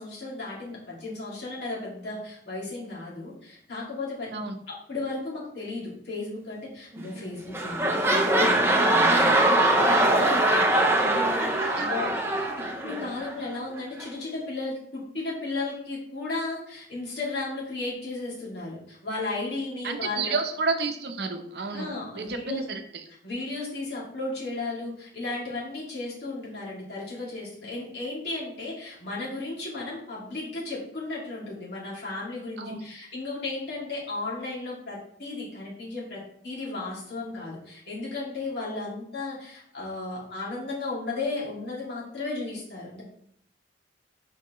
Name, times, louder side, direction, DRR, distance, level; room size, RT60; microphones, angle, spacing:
voice 1, 0.0-4.3 4.7-12.5 12.8-20.3 21.7-22.6 23.2-43.0, left 3 dB, 65° left, -6 dB, 2.4 m, -34 dB
sound 1, 7.0-7.2 7.5-13.3 14.0-14.1, right 1 dB, 15° right, 0.6 m, -22 dB
voice 2, 19.8-22.8 32.6-32.8, right 4 dB, 65° right, 6 dB, 0.7 m, -30 dB
6.9 x 4.6 x 3.0 m, 0.68 s
head